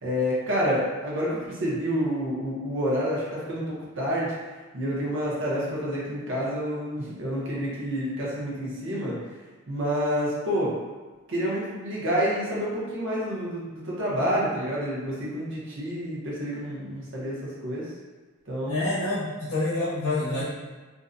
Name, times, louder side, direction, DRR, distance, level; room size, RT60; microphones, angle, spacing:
voice 1, 0.0-4.3 4.7-9.2 9.7-10.7 11.3-17.9 18.5-18.9, equal, 60° right, -6 dB, 0.7 m, -28 dB
voice 2, 18.7-20.4, left 2 dB, 75° left, -9 dB, 0.7 m, -27 dB
2.5 x 2.1 x 2.5 m, 1.3 s
head